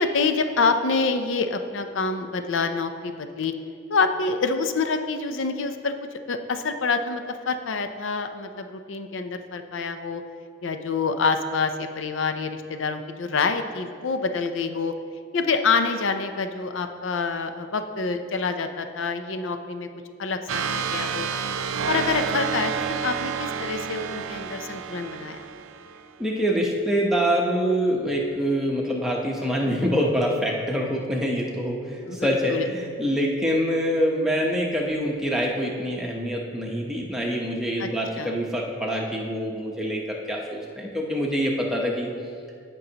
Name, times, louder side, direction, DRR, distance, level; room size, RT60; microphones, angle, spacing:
voice 1, 0.0-3.5 3.9-10.2 10.6-14.9 15.3-19.9 20.2-21.3 21.9-25.4 32.1-32.7 37.8-37.9 38.2-38.3, left 4 dB, 75° left, 8 dB, 0.5 m, -27 dB
sound 1, 20.5-26.0, right 6 dB, 85° right, 0.4 m, -29 dB
voice 2, 26.2-42.1, equal, ahead, -2 dB, 0.9 m, -25 dB
16.0 x 5.3 x 2.9 m, 2.2 s
head